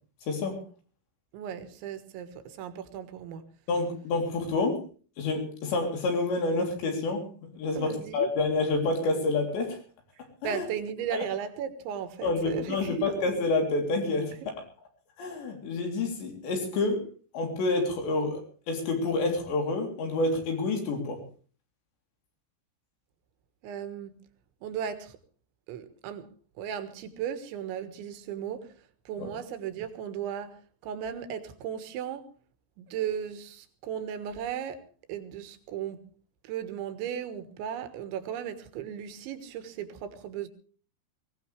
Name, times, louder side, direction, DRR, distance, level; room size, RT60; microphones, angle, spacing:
voice 1, 0.3-0.6 3.7-4.8 5.2-9.8 10.4-10.6 11.1-11.2 12.2-14.3 15.2-17.0 17.3-18.4 18.7-21.2 29.2-29.3, left 3 dB, 70° left, 5.7 m, -28 dB
voice 2, 1.3-3.5 7.8-8.3 10.4-13.1 14.4-14.5 23.6-24.1 24.6-25.2 25.7-28.7 29.1-32.3 32.8-34.8 35.1-36.0 36.4-40.5, right 9 dB, 85° right, 3.8 m, -36 dB
21.5 x 17.5 x 3.4 m
omnidirectional pair, 5.2 m